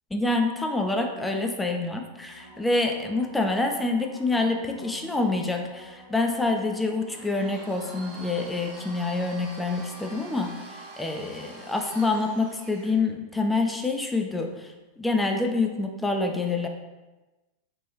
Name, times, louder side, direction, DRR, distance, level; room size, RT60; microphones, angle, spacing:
voice 1, 0.1-16.7, left 3 dB, 5° left, 3 dB, 0.4 m, -27 dB
sound 1, 2.2-10.8 16.1-16.2, right 1 dB, 75° left, 1.3 m, -48 dB
Domestic sounds home sounds, 7.1-13.0, right 1 dB, 30° right, 0.7 m, -45 dB
3.2 x 2.6 x 2.8 m, 1.1 s
figure-of-eight pair, 90°, 0 cm